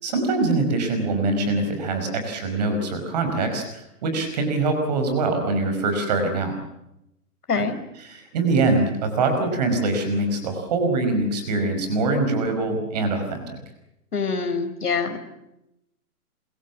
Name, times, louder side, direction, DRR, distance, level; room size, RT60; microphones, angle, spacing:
voice 1, 0.0-6.6 7.6-7.7 8.0-13.4, right 3 dB, 25° right, 6 dB, 5.2 m, -23 dB
voice 2, 14.1-15.2, left 5 dB, 75° left, 8 dB, 4.7 m, -24 dB
26.5 x 23.5 x 7.3 m, 0.85 s
hypercardioid pair, 175°, 46 cm